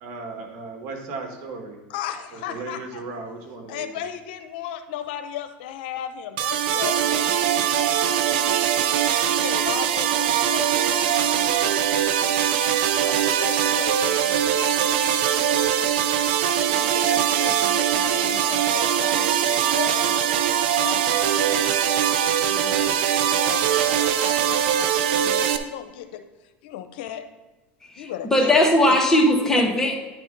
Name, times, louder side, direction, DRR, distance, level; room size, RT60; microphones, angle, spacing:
voice 1, 0.0-1.8 2.5-3.9, right 3 dB, 60° right, 3 dB, 1.6 m, -36 dB
voice 2, 1.9-3.0 3.7-8.6 9.2-11.6 13.0-14.5 15.0-16.0 16.4-20.2 20.7-23.0 23.3-26.2 26.6-27.2 28.0-28.5 28.9-29.0, left 10 dB, 75° left, 8 dB, 0.7 m, -36 dB
sound 1, 6.4-25.6, right 9 dB, 80° right, 0.6 m, -22 dB
voice 3, 27.8-30.0, left 1 dB, 10° left, 0 dB, 1.7 m, -19 dB
9.9 x 3.6 x 5.3 m, 1.1 s
supercardioid pair, 105°, 6 cm